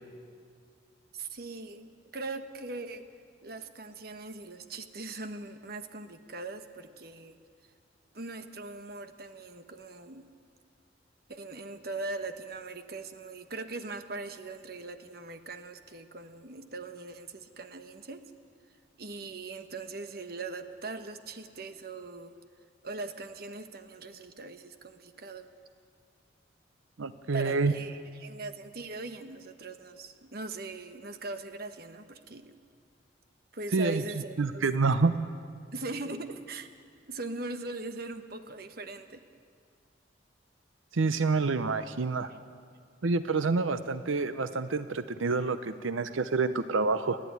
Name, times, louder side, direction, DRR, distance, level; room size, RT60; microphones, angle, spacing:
voice 1, 1.1-3.0 3.4-7.4 8.1-10.3 11.3-18.2 19.0-22.3 22.8-25.5 27.3-32.5 33.5-34.9 35.7-36.7 37.1-39.2 42.3-42.4, right 3 dB, 50° right, 8 dB, 1.2 m, -40 dB
voice 2, 27.0-27.7 33.7-34.0 34.4-35.1 40.9-42.3 43.0-47.2, right 4 dB, 90° right, 12 dB, 0.7 m, -27 dB
29.5 x 11.0 x 9.5 m, 2.2 s
head